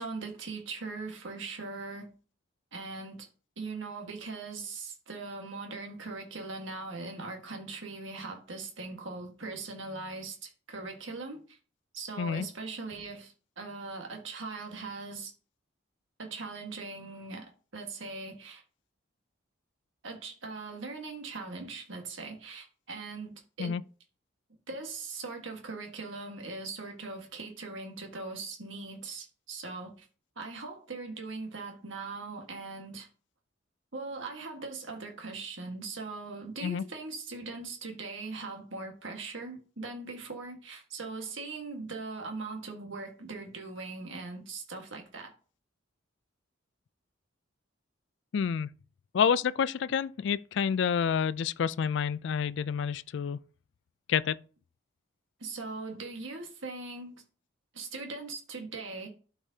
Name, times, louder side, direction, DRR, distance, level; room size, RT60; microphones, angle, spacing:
voice 1, 0.0-2.1 2.7-3.3 3.6-11.6 11.9-15.3 16.2-18.6 20.0-23.8 24.7-30.1 30.3-33.1 33.9-45.3 55.4-57.2 57.7-59.1, right 3 dB, 70° right, 1.5 m, -40 dB
voice 2, 48.3-48.7 49.1-53.4 54.1-54.4, left 7 dB, 60° left, 0.3 m, -28 dB
12.0 x 4.9 x 2.8 m
head